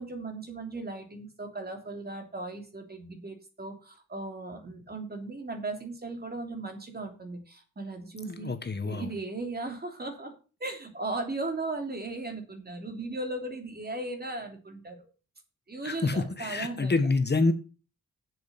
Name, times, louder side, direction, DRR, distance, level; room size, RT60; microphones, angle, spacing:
voice 1, 0.0-8.5 8.8-10.3 10.6-15.0 15.7-17.0, right 2 dB, 30° right, 3.1 m, -37 dB
voice 2, 8.2-9.1 15.8-17.5, left 3 dB, 35° left, 1.3 m, -27 dB
7.7 x 7.7 x 6.8 m
cardioid pair, 80°, 30 cm